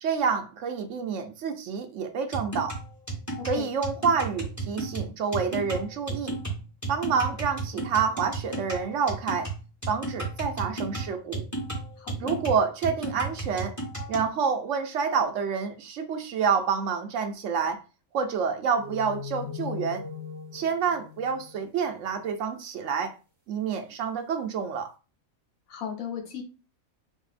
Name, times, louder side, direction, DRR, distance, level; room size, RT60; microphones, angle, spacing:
voice 1, 0.0-2.8 3.5-6.4 6.9-9.5 9.9-11.4 12.2-13.8 14.1-17.8 18.1-20.0 20.5-23.1 23.5-24.9, right 6 dB, 70° right, 0.8 m, -28 dB
sound 1, 2.3-14.3, right 3 dB, 15° left, 1.1 m, -34 dB
voice 2, 12.0-12.4 25.7-26.4, left 8 dB, 80° left, 1.3 m, -36 dB
sound 2, 18.8-22.2, left 6 dB, 15° right, 0.7 m, -39 dB
4.3 x 2.7 x 2.4 m
omnidirectional pair, 1.5 m